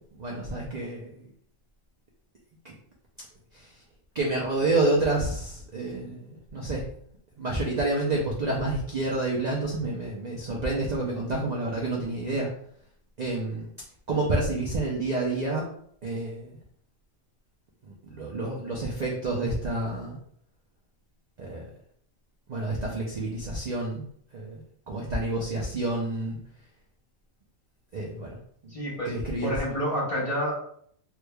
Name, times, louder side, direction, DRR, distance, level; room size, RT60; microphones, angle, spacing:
voice 1, 0.2-1.3 2.6-2.7 3.5-3.7 4.1-6.9 7.4-12.5 13.2-13.7 14.1-15.7 16.0-16.6 17.8-20.2 21.4-21.7 22.5-24.0 24.3-26.4 27.9-28.4 28.6-28.8 29.0-29.6, right 2 dB, 50° right, -3 dB, 0.5 m, -29 dB
voice 2, 28.7-29.1 29.4-30.6, equal, 30° left, -5 dB, 0.8 m, -28 dB
3.5 x 3.1 x 2.2 m, 0.64 s
omnidirectional pair, 1.4 m